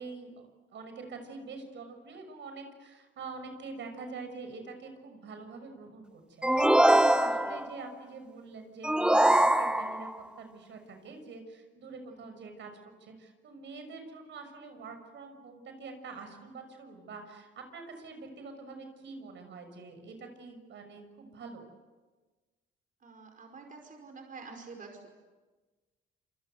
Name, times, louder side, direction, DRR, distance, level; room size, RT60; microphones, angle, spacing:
voice 1, 0.0-10.1 10.4-21.6, right 4 dB, 65° right, 6 dB, 6.2 m, -45 dB
sound 1, 6.4-7.8 8.8-10.2, right 1 dB, 5° right, 1.1 m, -23 dB
voice 2, 12.0-12.6 23.0-25.1, right 4 dB, 45° right, 4 dB, 5.2 m, -49 dB
27.5 x 25.0 x 8.1 m, 1.3 s
cardioid pair, 90°, 20 cm